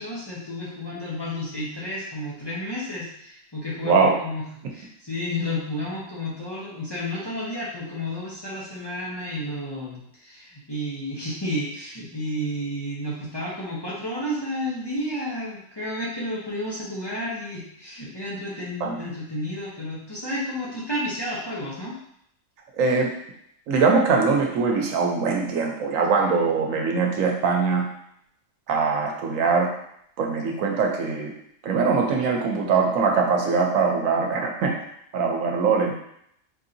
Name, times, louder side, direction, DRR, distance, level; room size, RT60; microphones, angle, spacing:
voice 1, 0.0-4.5 4.7-22.0, left 1 dB, 25° left, -7 dB, 0.8 m, -31 dB
voice 2, 3.8-4.1 18.8-19.0 22.7-23.1 23.7-27.9 28.7-29.7 30.2-31.3 31.6-34.7 35.1-35.9, right 4 dB, 90° right, 1 dB, 1.1 m, -22 dB
4.5 x 2.7 x 2.6 m, 0.72 s
omnidirectional pair, 1.3 m